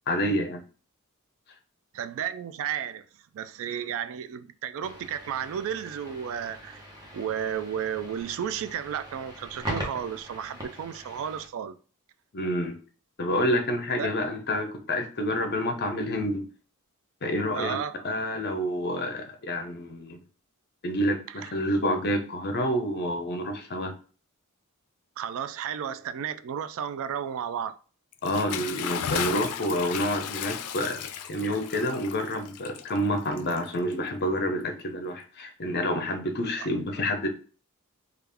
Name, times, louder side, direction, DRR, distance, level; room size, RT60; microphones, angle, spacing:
voice 1, 0.1-0.6 12.3-12.8 13.2-16.5 17.2-17.8 18.0-20.2 20.8-23.9 28.2-37.3, equal, 50° left, 0.7 m, -28 dB
voice 2, 1.9-3.1 3.3-6.8 7.1-11.8 14.0-14.1 17.5-18.0 21.4-21.5 25.2-27.8 36.6-36.7, right 8 dB, 65° right, 0.3 m, -33 dB
sound 1, 4.8-11.5, equal, 15° right, 1.0 m, -41 dB
Bathtub (filling or washing) / Splash splatter, 28.1-34.1, left 9 dB, 85° left, 0.4 m, -35 dB
3.4 x 2.4 x 3.4 m
head